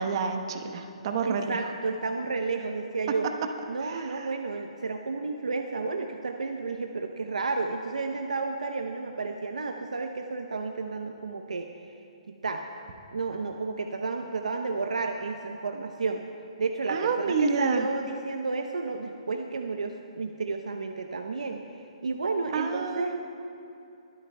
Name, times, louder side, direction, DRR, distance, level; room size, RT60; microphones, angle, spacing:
voice 1, 0.0-1.5 3.8-4.3 16.9-17.9 22.5-23.2, right 5 dB, 45° right, 5 dB, 1.1 m, -29 dB
voice 2, 1.2-3.3 3.7-12.0 12.3-12.6 13.1-16.3 16.6-23.1, right 4 dB, 85° right, 4 dB, 0.7 m, -32 dB
22.5 x 12.0 x 2.2 m, 2.7 s
hypercardioid pair, 145°, 4 cm